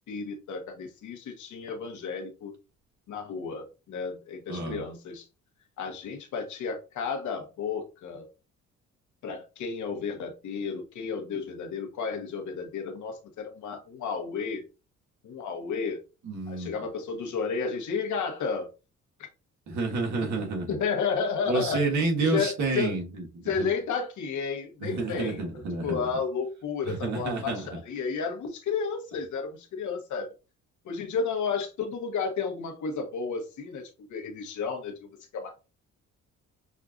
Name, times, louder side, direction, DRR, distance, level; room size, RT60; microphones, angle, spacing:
voice 1, 0.1-2.5 3.1-5.2 5.8-8.3 9.2-14.6 15.2-16.0 16.5-18.7 19.2-19.3 20.7-21.8 22.2-23.0 23.5-25.4 25.8-30.3 30.8-35.6, left 5 dB, 75° left, 1.2 m, -32 dB
voice 2, 4.5-4.8 16.2-16.7 19.7-20.8 21.4-23.3 23.5-23.7 24.8-26.1 26.9-27.6, right 3 dB, 70° right, 1.6 m, -29 dB
6.4 x 2.5 x 2.4 m
cardioid pair, 90°, 30 cm